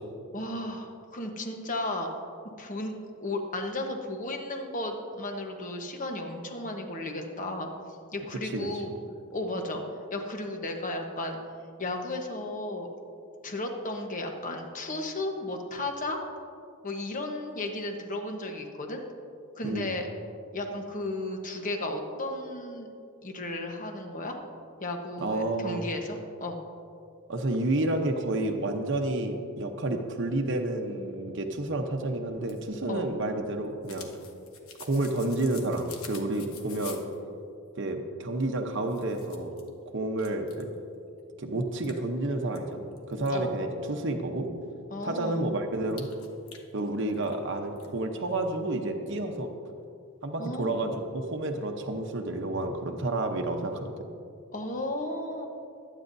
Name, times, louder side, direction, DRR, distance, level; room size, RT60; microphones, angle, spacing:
voice 1, 0.3-2.1 2.6-7.7 8.1-8.9 9.3-9.8 10.1-11.4 11.8-12.9 13.4-16.2 16.8-19.0 19.6-20.1 20.5-22.9 23.2-24.4 24.8-26.6 32.9-33.0 43.3-43.5 44.9-45.5 50.4-50.7 54.5-55.5, left 2 dB, 40° left, 3 dB, 1.1 m, -34 dB
voice 2, 19.6-20.0 25.2-25.8 27.3-34.1 34.8-37.0 37.8-39.5 39.9-40.7 41.4-44.5 45.0-46.1 46.7-49.5 50.2-53.9, right 2 dB, 55° right, 3 dB, 0.9 m, -30 dB
sound 1, 32.3-37.2 38.4-38.5 38.8-39.7 40.2-40.8 41.2-41.3 41.8-43.3 45.9-47.4 47.7-47.9, left 6 dB, 75° left, 1.1 m, -48 dB
22.0 x 9.2 x 2.7 m, 2.5 s
head